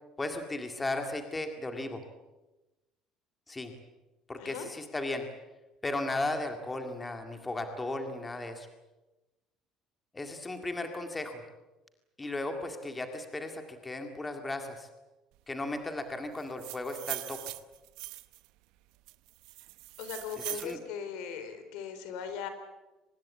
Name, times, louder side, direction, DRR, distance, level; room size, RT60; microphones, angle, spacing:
voice 1, 0.2-2.0 3.5-3.7 4.3-5.3 5.8-8.7 10.1-11.4 12.2-14.9 15.5-17.4 20.5-20.8, left 2 dB, 10° left, 5 dB, 2.0 m, -35 dB
voice 2, 4.4-4.7 20.0-22.5, left 7 dB, 80° left, 10 dB, 4.1 m, -39 dB
sound 1, 16.4-18.5 19.1-20.8, right 20 dB, 75° right, 1.0 m, -41 dB
24.5 x 20.0 x 8.5 m, 1.1 s
cardioid pair, 175°, 0 cm